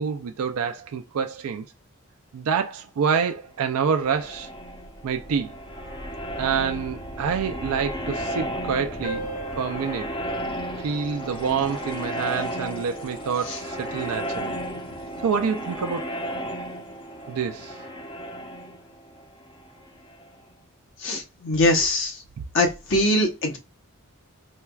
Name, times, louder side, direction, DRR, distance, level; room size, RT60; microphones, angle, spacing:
voice 1, 0.0-1.7 2.3-4.5 5.0-5.5 6.4-10.1 10.8-14.6 15.2-16.2 17.3-17.8, right 6 dB, 80° right, 0.4 m, -27 dB
sound 1, 3.9-20.4, equal, 25° left, 0.6 m, -34 dB
sound 2, 9.0-14.0, right 2 dB, 90° left, 1.4 m, -41 dB
voice 2, 21.0-22.2 22.5-23.6, left 1 dB, 55° left, 0.9 m, -22 dB
4.4 x 2.3 x 2.2 m
head